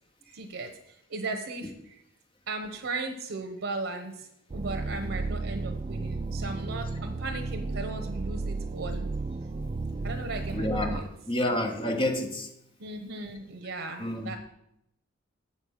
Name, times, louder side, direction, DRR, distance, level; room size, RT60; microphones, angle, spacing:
voice 1, 0.2-2.0 2.5-9.1 10.0-11.1 11.5-11.6 12.8-14.4, right 3 dB, 85° right, 4 dB, 0.9 m, -37 dB
sound 1, 4.5-11.0, right 3 dB, 30° right, 0.3 m, -33 dB
voice 2, 10.5-12.5 14.0-14.3, left 1 dB, 25° left, 3 dB, 1.1 m, -29 dB
8.2 x 5.4 x 6.4 m, 0.78 s
head